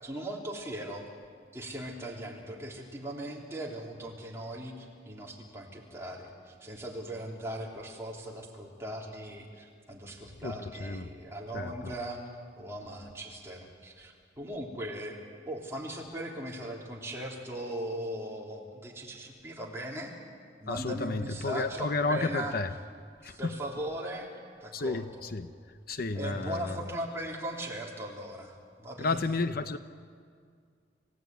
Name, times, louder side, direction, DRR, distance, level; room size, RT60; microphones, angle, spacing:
voice 1, 0.0-1.0 1.5-12.2 12.6-15.2 15.4-20.1 20.6-22.6 23.2-24.3 24.6-25.2 26.1-29.2, right 1 dB, 15° right, -2 dB, 3.4 m, -39 dB
voice 2, 10.4-11.1 11.5-11.9 20.7-22.7 23.2-23.5 24.7-25.5 25.9-27.0 29.0-29.8, left 3 dB, 60° left, 11 dB, 0.8 m, -32 dB
28.0 x 16.0 x 9.5 m, 2.1 s
head